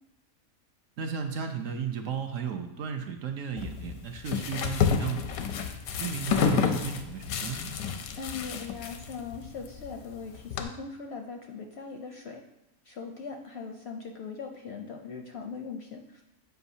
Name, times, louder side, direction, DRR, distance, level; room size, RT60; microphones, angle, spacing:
voice 1, 1.0-5.5 6.0-7.8, right 6 dB, 70° right, 5 dB, 0.9 m, -35 dB
sound 1, 3.6-10.6, left 6 dB, 80° left, 1.0 m, -30 dB
voice 2, 8.2-12.4 12.8-16.2, left 5 dB, 65° left, 2 dB, 0.7 m, -40 dB
7.9 x 4.8 x 2.7 m, 0.91 s
omnidirectional pair, 1.5 m